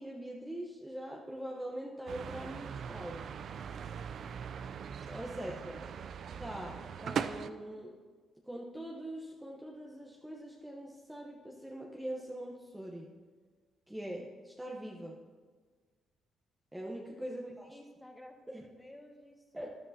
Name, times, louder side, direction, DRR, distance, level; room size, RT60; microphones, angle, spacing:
voice 1, 0.0-3.3 5.1-5.8 6.4-8.0 8.4-13.2 13.9-15.3 16.7-17.7 18.5-18.6 19.5-19.8, right 1 dB, 10° right, -1 dB, 0.9 m, -43 dB
sound 1, 2.1-7.5, right 7 dB, 60° right, 0.4 m, -40 dB
voice 2, 4.9-5.5 17.1-19.7, left 1 dB, 15° left, 1 dB, 1.6 m, -55 dB
12.5 x 11.0 x 2.8 m, 1.5 s
cardioid pair, 90°, 0 cm